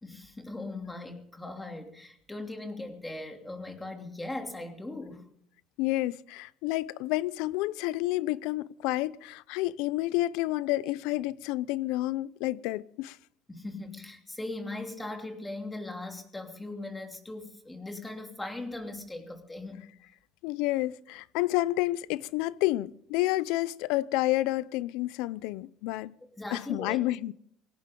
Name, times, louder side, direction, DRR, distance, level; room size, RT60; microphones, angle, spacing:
voice 1, 0.0-5.3 13.5-19.9 26.4-27.0, left 2 dB, 10° left, 2.9 m, -39 dB
voice 2, 5.8-13.2 20.4-26.2 26.5-27.3, left 17 dB, 80° left, 0.6 m, -29 dB
21.0 x 17.0 x 3.8 m
cardioid pair, 110°, 0 cm